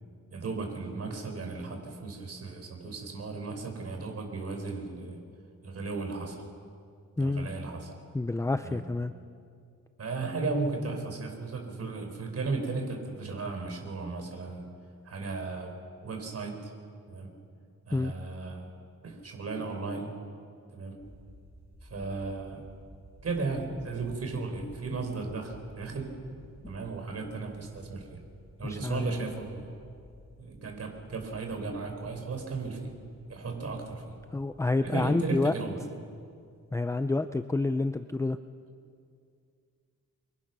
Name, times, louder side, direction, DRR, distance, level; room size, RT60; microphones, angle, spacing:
voice 1, 0.3-5.2 5.6-6.4 7.2-7.9 8.6-8.8 10.0-14.7 15.0-15.7 16.0-16.7 17.1-17.3 17.9-18.7 19.0-20.1 20.7-21.0 21.9-22.6 23.2-26.1 26.7-28.2 28.6-29.7 30.4-32.9 33.3-34.0 34.8-35.8, right 3 dB, 50° right, 4 dB, 4.9 m, -35 dB
voice 2, 7.2-7.5 8.1-9.1 17.9-18.1 28.6-29.2 34.3-35.5 36.7-38.4, left 2 dB, 10° left, 9 dB, 0.5 m, -28 dB
sound 1, 21.0-36.6, equal, 10° right, 4.2 m, -54 dB
29.5 x 24.0 x 6.1 m, 2.3 s
wide cardioid pair, 130°, 32 cm